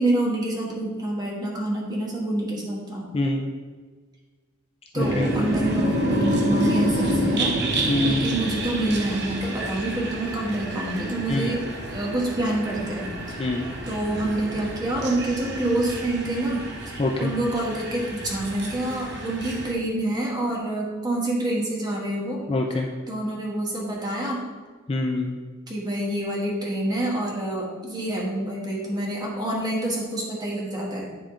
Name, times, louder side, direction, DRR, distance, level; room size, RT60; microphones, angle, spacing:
voice 1, 0.0-3.1 4.9-7.6 8.0-11.6 11.9-13.4 13.9-22.4 23.1-24.5 25.7-31.1, right 1 dB, 20° right, -3 dB, 1.3 m, -27 dB
voice 2, 3.1-3.5 5.0-5.2 7.9-8.2 11.3-11.5 13.4-13.7 17.0-17.3 22.5-22.9 24.9-25.4, left 2 dB, 30° left, 1 dB, 0.4 m, -24 dB
sound 1, 5.0-19.7, right 1 dB, 55° right, 0.9 m, -28 dB
9.5 x 3.7 x 3.7 m, 1.4 s
head